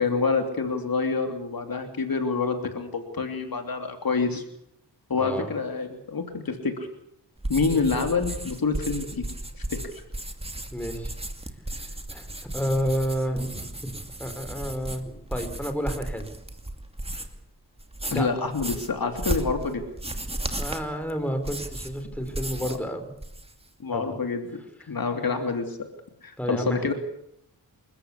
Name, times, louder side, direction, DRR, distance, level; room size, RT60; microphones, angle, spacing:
voice 1, 0.0-4.4 5.1-6.7 7.5-9.2 9.7-9.8 18.1-19.8 22.6-22.8 23.8-24.6 24.9-25.9 26.2-26.9, left 4 dB, 60° left, 5 dB, 3.1 m, -27 dB
voice 2, 5.2-5.5 7.7-7.9 10.7-11.1 12.1-13.9 14.2-16.3 18.1-18.3 20.6-23.1 23.9-24.1 26.4-26.8, equal, 5° left, 6 dB, 3.9 m, -30 dB
sound 1, 7.4-17.4 17.8-22.9 23.1-23.7, right 1 dB, 15° right, 2.4 m, -35 dB
27.5 x 14.5 x 8.3 m, 0.76 s
wide cardioid pair, 90°, 40 cm